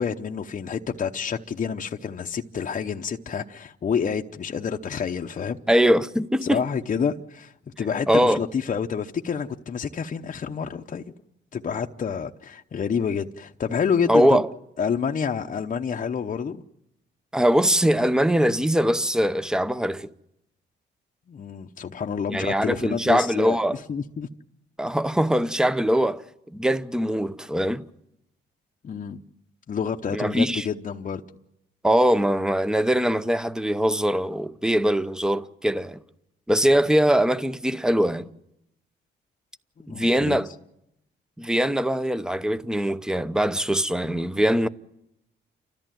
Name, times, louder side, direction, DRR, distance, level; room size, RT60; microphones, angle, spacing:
voice 1, 0.0-5.6 6.4-11.0 11.5-14.5 14.8-16.6 21.3-24.3 28.8-29.2 29.7-31.2 39.8-40.4, left 6 dB, 40° left, 0.8 m, -28 dB
voice 2, 5.7-6.6 8.1-8.4 14.1-14.5 17.3-20.1 22.3-23.8 24.8-26.2 26.5-27.8 30.1-30.7 31.8-36.0 36.5-38.3 39.9-40.5 41.4-44.7, equal, 5° right, 0.8 m, -22 dB
30.0 x 13.5 x 9.1 m
cardioid pair, 90°, 20 cm